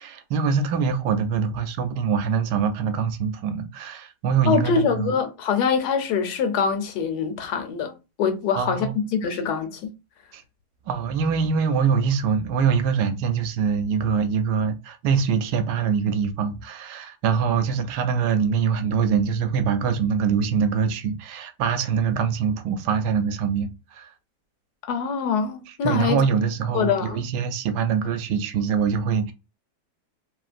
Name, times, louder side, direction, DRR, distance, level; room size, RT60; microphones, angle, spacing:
voice 1, 0.0-5.1 8.6-9.0 9.3-9.4 10.3-10.4 10.9-24.1 25.7-29.3, right 6 dB, 80° right, 1.2 m, -24 dB
voice 2, 4.5-7.9 8.2-8.9 9.1-9.9 24.9-26.2 26.7-27.2, left 6 dB, 75° left, 1.2 m, -24 dB
3.0 x 2.8 x 2.4 m
omnidirectional pair, 1.8 m